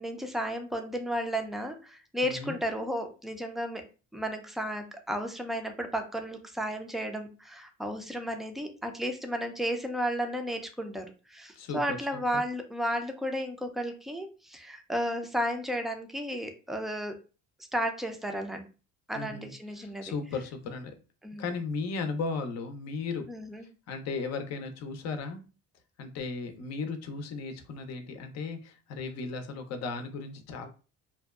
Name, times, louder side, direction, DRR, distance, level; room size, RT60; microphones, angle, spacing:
voice 1, 0.0-3.8 4.1-17.2 17.7-18.7 19.1-20.1 21.2-21.4 23.3-23.7, equal, ahead, 5 dB, 0.4 m, -33 dB
voice 2, 2.2-2.6 11.5-12.4 19.1-21.0 21.4-23.3 23.9-25.4 26.0-30.7, left 4 dB, 60° left, 6 dB, 0.6 m, -36 dB
2.6 x 2.2 x 2.3 m, 0.34 s
cardioid pair, 105°, 30 cm